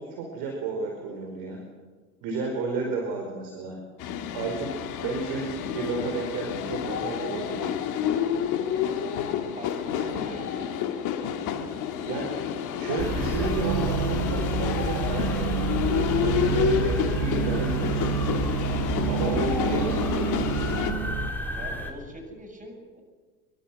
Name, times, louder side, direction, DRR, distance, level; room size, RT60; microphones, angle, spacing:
voice 1, 0.0-1.6 2.2-3.8 4.3-7.8 10.1-10.3 12.0-12.4 12.8-18.4 19.0-20.4, right 4 dB, 50° right, 2 dB, 5.1 m, -32 dB
voice 2, 2.4-3.0 8.7-9.1 9.6-10.8 19.2-19.8 21.5-23.0, right 1 dB, 20° right, 5 dB, 6.8 m, -44 dB
sound 1, 4.0-20.9, left 8 dB, 45° left, 2.7 m, -29 dB
sound 2, 13.0-21.9, left 2 dB, 5° left, 4.6 m, -32 dB
sound 3, 13.0-21.3, right 11 dB, 80° right, 0.7 m, -30 dB
27.0 x 23.5 x 6.3 m, 1.4 s
figure-of-eight pair, 70°, 43 cm